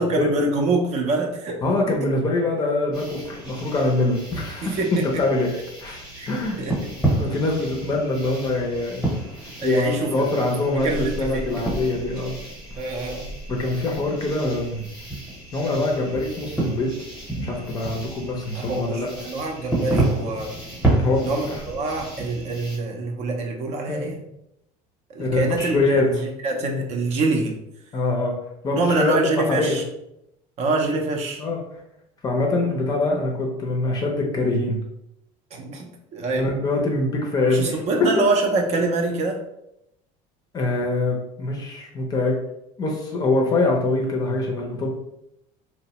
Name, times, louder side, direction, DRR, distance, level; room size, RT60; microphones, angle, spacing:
voice 1, 0.0-1.9 4.6-5.2 6.2-6.3 6.6-6.7 7.1-7.2 9.6-11.5 12.8-13.3 15.7-15.9 18.5-20.5 21.2-24.2 25.1-27.5 28.8-29.8 30.6-31.4 35.5-36.5 37.5-39.4, right 2 dB, 40° right, 2 dB, 0.5 m, -25 dB
voice 2, 1.6-6.6 7.2-9.2 9.6-12.4 13.5-14.9 15.5-16.9 17.4-19.1 21.0-21.6 23.9-24.2 25.2-26.1 27.9-28.3 28.6-29.8 31.4-31.6 32.2-34.8 36.4-38.1 40.5-42.3 42.8-44.9, left 2 dB, 25° left, 0 dB, 0.5 m, -24 dB
sound 1, 2.9-22.8, right 2 dB, 5° right, 0.9 m, -30 dB
3.0 x 2.1 x 2.8 m, 0.82 s
cardioid pair, 150°, 17 cm